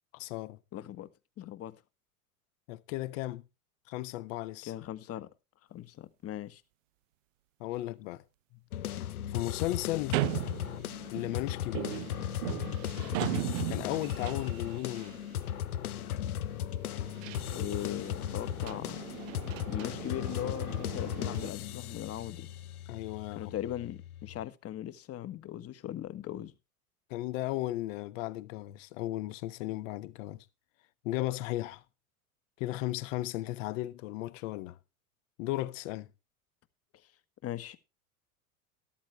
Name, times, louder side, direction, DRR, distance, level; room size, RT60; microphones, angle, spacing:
voice 1, 0.1-0.6 2.7-3.4 3.9-4.7 7.6-8.2 9.3-10.2 11.1-12.0 13.7-15.2 22.9-23.5 27.1-30.4 31.0-31.8 32.6-34.8 35.4-36.1, left 16 dB, 55° left, 1.4 m, -35 dB
voice 2, 0.7-1.1 1.4-1.8 4.7-5.3 5.7-6.6 8.5-8.6 17.5-19.1 19.7-22.5 23.3-26.5 37.0-37.1 37.4-37.8, left 12 dB, 30° left, 1.5 m, -39 dB
sound 1, 8.7-24.4, left 11 dB, 75° left, 0.8 m, -37 dB
sound 2, 10.1-21.5, right 19 dB, 60° right, 0.6 m, -39 dB
13.5 x 13.0 x 3.2 m
figure-of-eight pair, 80°, 44 cm